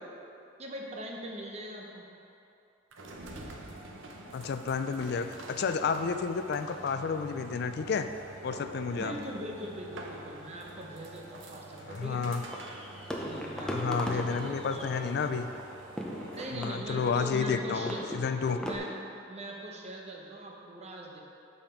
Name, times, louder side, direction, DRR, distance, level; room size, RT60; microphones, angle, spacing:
voice 1, 0.6-2.0 9.0-12.2 13.2-15.1 16.3-18.0 18.6-18.9 19.3-21.2, right 1 dB, 35° right, -1 dB, 0.8 m, -41 dB
sound 1, 2.9-16.6, right 2 dB, 80° right, 0.7 m, -46 dB
voice 2, 4.3-8.1 8.4-9.1 11.9-12.4 13.6-15.5 16.5-18.6, left 5 dB, 55° left, 9 dB, 0.3 m, -31 dB
sound 2, 12.4-18.8, equal, 5° left, 0.6 m, -39 dB
6.8 x 5.6 x 4.4 m, 2.7 s
head